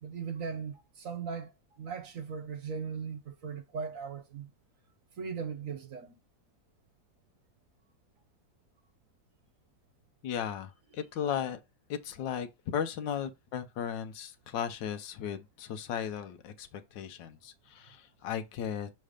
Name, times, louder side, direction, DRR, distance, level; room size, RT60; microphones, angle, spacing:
voice 1, 0.0-4.5 5.2-6.2, right 6 dB, 55° right, 1.1 m, -38 dB
voice 2, 10.2-11.6 11.9-12.5 12.7-18.9, left 8 dB, 85° left, 1.4 m, -36 dB
6.5 x 3.2 x 5.0 m
omnidirectional pair, 1.9 m